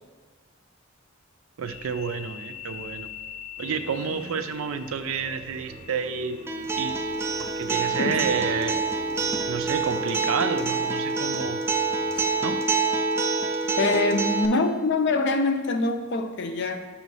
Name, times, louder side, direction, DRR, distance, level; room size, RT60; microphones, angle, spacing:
voice 1, 1.6-3.1 3.6-6.4 6.8-7.0 7.4-8.8 9.4-11.6 12.4-12.6, right 6 dB, 85° right, 0.4 m, -30 dB
sound 1, 1.7-10.2, left 7 dB, 90° left, 0.8 m, -44 dB
sound 2, 3.6-12.5, equal, 40° right, 0.7 m, -44 dB
Acoustic guitar, 6.5-14.5, right 3 dB, 10° right, 0.3 m, -26 dB
voice 2, 13.8-16.9, left 3 dB, 60° left, 0.5 m, -24 dB
6.3 x 3.1 x 5.3 m
head